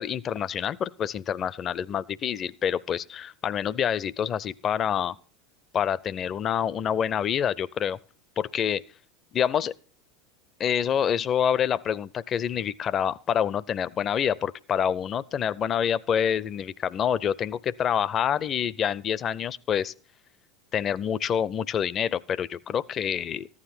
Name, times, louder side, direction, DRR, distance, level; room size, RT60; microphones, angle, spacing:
voice 1, 0.0-5.2 5.7-8.0 8.4-8.8 9.3-9.7 10.6-19.9 20.7-23.5, left 8 dB, 35° left, 0.5 m, -27 dB
14.5 x 9.8 x 4.3 m
figure-of-eight pair, 80°, 0 cm